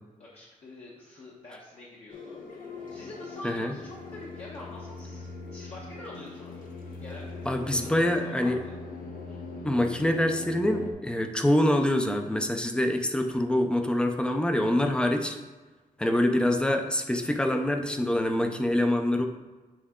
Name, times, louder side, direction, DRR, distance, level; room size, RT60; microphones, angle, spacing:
voice 1, 0.2-2.4 2.7-6.7 7.0-8.8 9.3-9.4, left 2 dB, 50° left, -6 dB, 1.0 m, -45 dB
sound 1, 2.1-10.9, left 3 dB, 80° left, 1.1 m, -41 dB
voice 2, 3.4-3.7 7.5-8.6 9.6-15.4 16.0-19.3, left 1 dB, 5° left, 5 dB, 0.5 m, -25 dB
8.6 x 3.9 x 3.6 m, 1.3 s
wide cardioid pair, 175°, 14 cm